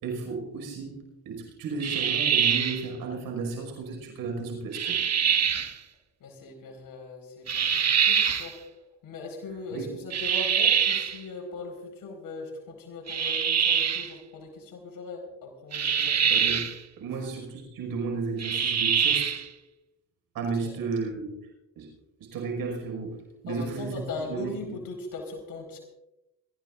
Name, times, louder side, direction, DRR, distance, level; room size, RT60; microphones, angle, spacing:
voice 1, 0.0-5.0 9.7-9.9 16.3-19.4 20.3-21.3 21.8-21.9 22.2-24.8, right 4 dB, 80° right, 2 dB, 5.6 m, -34 dB
sound 1, 1.8-2.9 4.7-5.7 7.5-8.5 10.1-11.2 13.1-14.1 15.7-16.8 18.4-19.5, right 8 dB, 45° right, 1.4 m, -24 dB
voice 2, 6.2-8.6 9.0-16.4 20.6-20.8 23.5-25.8, left 3 dB, 70° left, 2 dB, 4.7 m, -39 dB
24.5 x 14.5 x 2.5 m, 0.93 s
cardioid pair, 85°, 35 cm